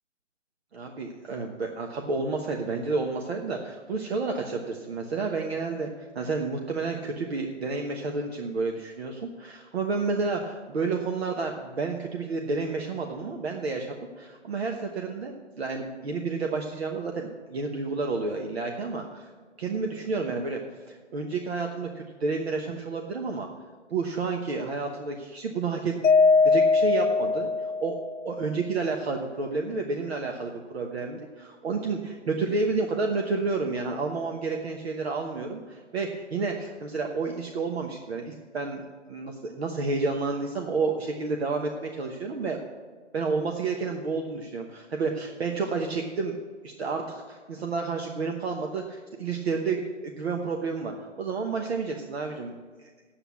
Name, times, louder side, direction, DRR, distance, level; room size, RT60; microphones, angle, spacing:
voice 1, 0.7-19.3 19.6-20.6 20.9-23.5 23.9-26.0 26.4-28.0 28.2-42.6 43.1-46.4 46.6-52.5 52.8-52.9, right 4 dB, 55° right, 2 dB, 1.1 m, -30 dB
Mallet percussion, 26.0-28.3, left 4 dB, 80° left, 0.6 m, -21 dB
8.4 x 7.9 x 8.2 m, 1.5 s
hypercardioid pair, 150°, 37 cm